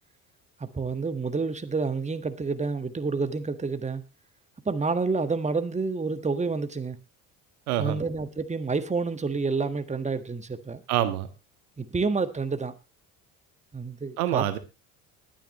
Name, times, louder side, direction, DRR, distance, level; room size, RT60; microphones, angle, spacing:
voice 1, 0.6-4.0 4.7-7.0 7.8-10.8 11.8-12.7 13.7-14.4, right 4 dB, 15° right, 1.6 m, -29 dB
voice 2, 7.7-8.0 10.9-11.3 14.2-14.6, right 13 dB, 75° right, 1.5 m, -26 dB
20.5 x 9.9 x 3.1 m
hypercardioid pair, 60°, 44 cm